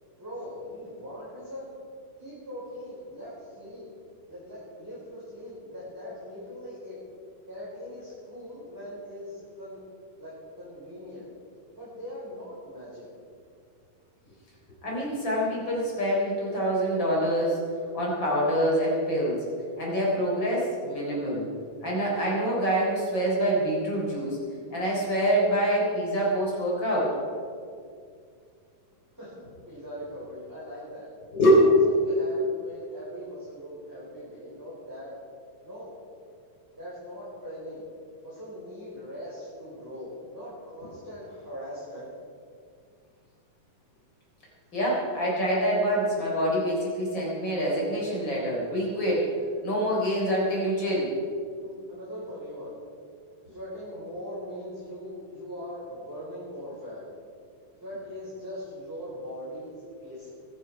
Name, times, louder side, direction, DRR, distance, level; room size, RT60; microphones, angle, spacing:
voice 1, 0.2-1.7 2.2-3.9 4.3-7.0 7.5-11.3 11.7-13.1 29.2-31.0 31.6-35.1 35.6-35.9 36.7-37.8 38.2-42.1 51.6-52.8 53.4-57.0 57.8-60.3, equal, 5° right, -10 dB, 4.5 m, -41 dB
voice 2, 14.8-17.6 17.9-19.4 19.8-21.5 21.8-24.4 24.7-27.1 31.3-31.5 44.7-49.3 49.6-51.1, equal, 30° left, -4 dB, 4.6 m, -26 dB
22.0 x 10.0 x 4.8 m, 2.3 s
omnidirectional pair, 4.0 m